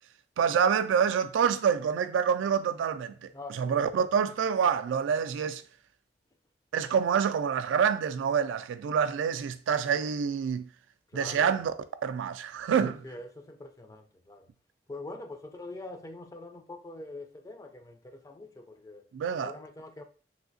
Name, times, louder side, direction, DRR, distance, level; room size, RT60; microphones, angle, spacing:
voice 1, 0.4-5.6 6.7-10.7 11.1-11.7 12.0-13.0 19.1-19.5, right 7 dB, 90° right, 0.3 m, -27 dB
voice 2, 3.3-4.1 11.1-11.6 12.8-14.5 14.9-19.0 19.4-20.0, left 2 dB, 20° left, 0.3 m, -44 dB
3.2 x 2.7 x 2.6 m
head